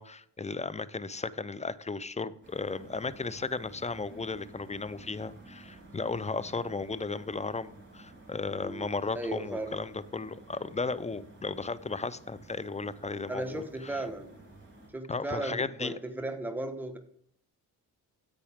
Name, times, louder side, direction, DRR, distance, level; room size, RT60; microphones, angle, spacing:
voice 1, 0.0-14.0 15.1-15.9, left 4 dB, 15° left, 17 dB, 0.6 m, -35 dB
sound 1, 2.4-14.9, right 2 dB, 25° right, 4.5 m, -53 dB
voice 2, 8.5-8.9 9.1-9.8 13.3-14.3 14.9-17.0, right 1 dB, 5° right, 5 dB, 1.3 m, -36 dB
10.5 x 8.3 x 3.6 m, 0.67 s
cardioid pair, 60°, 41 cm